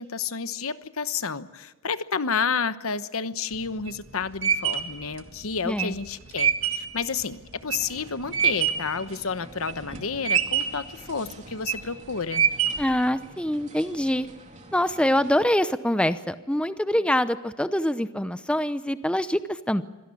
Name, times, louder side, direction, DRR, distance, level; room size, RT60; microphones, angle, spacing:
voice 1, 0.0-12.4, left 5 dB, 85° left, 12 dB, 1.1 m, -30 dB
sound 1, 3.5-9.0 9.4-10.0 10.2-10.9 11.4-11.9 12.3-13.0, right 8 dB, 70° right, 1.8 m, -25 dB
voice 2, 5.6-6.0 12.8-14.3 14.7-19.8, left 1 dB, 5° left, 12 dB, 0.7 m, -25 dB
sound 2, 7.7-15.4, right 2 dB, 35° right, 2.7 m, -47 dB
25.0 x 17.0 x 8.5 m, 1.2 s
head